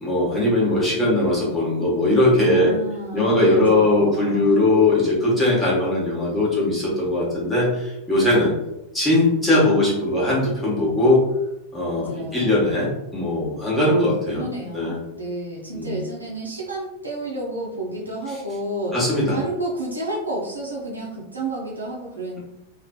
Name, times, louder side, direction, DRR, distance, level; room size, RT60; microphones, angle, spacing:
voice 1, 0.0-2.7 3.1-8.5 8.9-11.2 11.7-12.1 12.3-14.4 14.7-15.0 15.7-16.0 18.9-19.4, left 1 dB, 10° left, -6 dB, 1.1 m, -20 dB
voice 2, 2.4-4.5 9.4-10.1 11.8-12.8 14.3-19.0 19.3-22.4, right 1 dB, 80° right, -4 dB, 0.7 m, -31 dB
2.5 x 2.4 x 2.3 m, 0.88 s
figure-of-eight pair, 90°, 0 cm